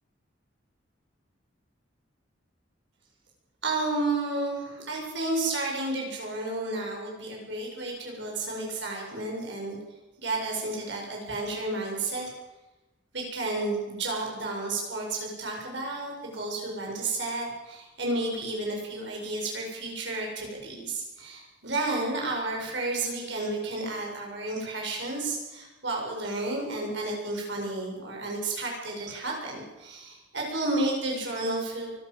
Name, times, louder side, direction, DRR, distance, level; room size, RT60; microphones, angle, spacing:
voice 1, 3.6-9.8 10.2-12.3 13.1-31.9, right 2 dB, 65° right, -1 dB, 7.7 m, -32 dB
24.0 x 13.0 x 8.2 m, 1.1 s
head